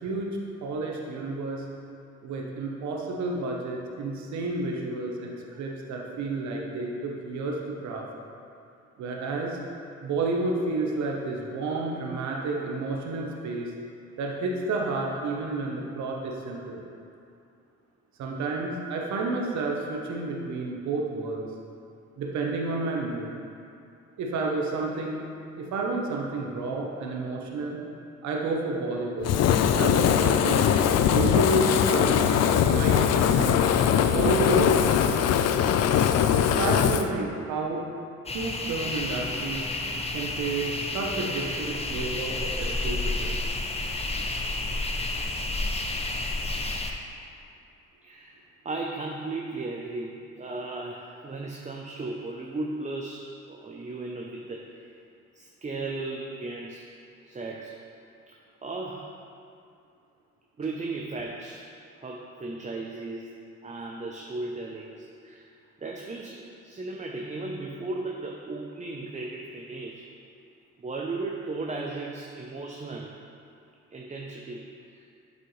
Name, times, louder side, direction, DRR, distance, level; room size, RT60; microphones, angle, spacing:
voice 1, 0.0-1.7 2.2-8.1 9.0-9.6 10.0-13.7 14.2-16.8 18.2-21.4 22.2-23.3 24.2-25.2 25.6-27.8 28.2-29.3 29.6-30.7 31.1-33.6 34.1-35.2 36.3-37.8 38.3-39.7 40.1-43.4, right 3 dB, 75° right, 0 dB, 1.0 m, -30 dB
Fire, 29.2-37.1, left 9 dB, 60° left, 0.4 m, -21 dB
sound 1, 38.3-46.9, left 2 dB, 20° left, 0.7 m, -30 dB
voice 2, 48.0-48.4 48.6-54.7 55.3-56.9 57.2-57.8 58.3-59.1 60.6-61.6 62.0-65.5 65.8-70.1 70.8-73.2 73.9-74.7 75.0-75.1, right 3 dB, 25° right, 0 dB, 0.6 m, -36 dB
8.0 x 5.4 x 3.2 m, 2.5 s
supercardioid pair, 65°, 29 cm